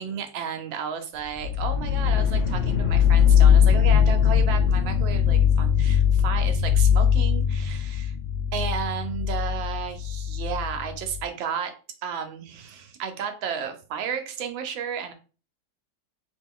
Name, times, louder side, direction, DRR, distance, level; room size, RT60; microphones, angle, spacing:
voice 1, 0.0-8.2 8.5-11.7 12.0-15.1, right 7 dB, 85° right, 6 dB, 1.4 m, -33 dB
sound 1, 1.4-11.2, left 8 dB, 90° left, 0.6 m, -21 dB
3.3 x 3.0 x 3.7 m, 0.35 s
omnidirectional pair, 2.0 m